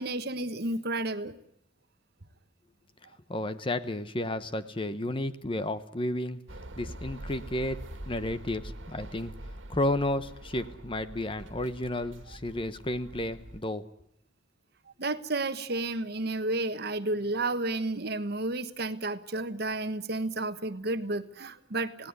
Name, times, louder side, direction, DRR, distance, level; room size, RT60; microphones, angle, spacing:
voice 1, 0.0-1.4 15.0-22.1, right 2 dB, 55° right, 11 dB, 1.3 m, -31 dB
voice 2, 3.3-6.4 6.8-7.8 8.1-9.3 9.7-13.8, left 1 dB, 30° left, 12 dB, 1.1 m, -32 dB
sound 1, 6.5-13.6, right 1 dB, 90° right, 1.9 m, -44 dB
27.5 x 17.5 x 9.7 m, 0.77 s
head